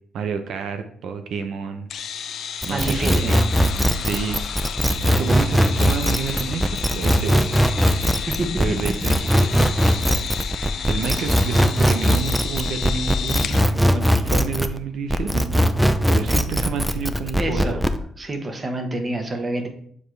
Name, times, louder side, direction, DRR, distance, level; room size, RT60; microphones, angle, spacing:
voice 1, 0.1-2.3 2.7-3.4 3.9-4.5 4.9-7.5 8.6-10.1 10.9-15.5 16.1-17.8, right 6 dB, 70° right, 7 dB, 0.6 m, -30 dB
sound 1, 1.9-13.6, left 8 dB, 65° left, 0.5 m, -32 dB
sound 2, 2.6-14.8 15.1-18.0, equal, 5° right, 0.5 m, -20 dB
voice 2, 2.7-3.4 5.1-5.2 8.3-8.8 17.4-17.8 18.2-19.7, right 2 dB, 30° right, 5 dB, 1.2 m, -27 dB
7.2 x 4.4 x 3.2 m, 0.62 s
cardioid pair, 90°, 0 cm